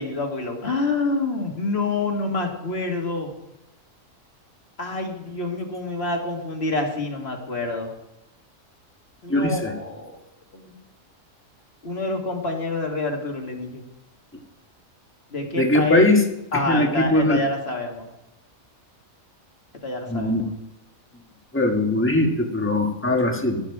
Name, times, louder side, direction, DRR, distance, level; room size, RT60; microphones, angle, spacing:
voice 1, 0.0-3.3 4.8-7.9 9.2-10.2 10.5-10.8 11.8-13.9 15.3-16.1 16.5-18.1 19.8-20.5, left 2 dB, 50° left, 2 dB, 2.1 m, -27 dB
voice 2, 9.3-9.7 15.6-16.2 16.7-17.4 20.1-20.4 21.5-23.6, left 1 dB, 10° left, 3 dB, 1.4 m, -20 dB
12.5 x 11.5 x 4.7 m, 0.90 s
omnidirectional pair, 1.4 m